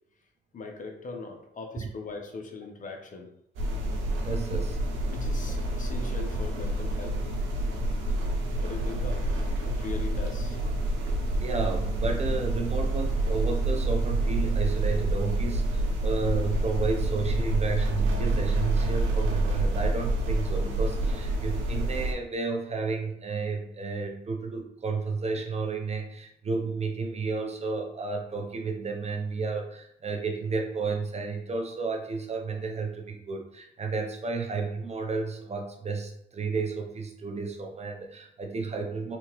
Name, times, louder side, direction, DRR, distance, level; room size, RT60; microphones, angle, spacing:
voice 1, 0.5-3.3 5.1-7.2 8.6-10.6, left 3 dB, 40° left, 2 dB, 0.8 m, -40 dB
sound 1, 3.6-22.1, right 1 dB, 85° right, 0.7 m, -28 dB
voice 2, 4.2-4.8 11.4-39.2, right 4 dB, 35° right, 3 dB, 0.5 m, -32 dB
3.4 x 2.8 x 3.0 m, 0.73 s
cardioid pair, 90°, 20 cm